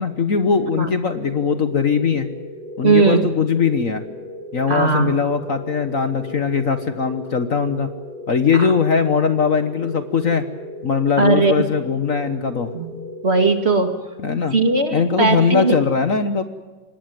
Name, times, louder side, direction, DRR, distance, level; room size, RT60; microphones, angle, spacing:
voice 1, 0.0-2.3 2.8-4.0 4.5-7.9 8.3-10.4 10.8-12.7 14.2-14.6 14.9-16.4, left 6 dB, 45° left, 10 dB, 1.5 m, -20 dB
sound 1, 1.1-14.3, left 1 dB, 70° right, 4.7 m, -36 dB
voice 2, 2.8-3.3 4.7-5.1 8.5-8.7 11.2-11.7 12.7-13.0 13.2-13.9 14.5-15.8, right 3 dB, 35° right, 7 dB, 2.4 m, -18 dB
24.5 x 20.0 x 9.4 m, 1.2 s
omnidirectional pair, 2.1 m